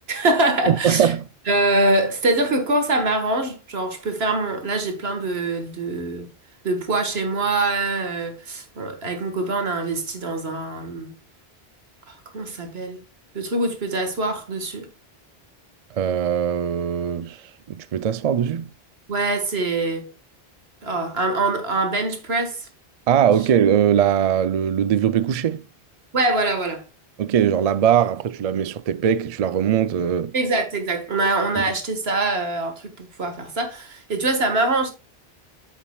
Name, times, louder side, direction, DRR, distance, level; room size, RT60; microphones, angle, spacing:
voice 1, 0.1-1.1 1.5-6.3 6.6-11.1 12.1-13.0 13.3-14.9 19.1-20.1 20.8-22.7 26.1-26.8 30.3-34.9, right 2 dB, 75° right, 1.8 m, -24 dB
voice 2, 0.7-1.2 15.9-18.7 23.1-25.7 27.2-30.3 31.6-31.7, right 9 dB, 50° right, 0.4 m, -21 dB
8.8 x 7.3 x 2.3 m
omnidirectional pair, 1.1 m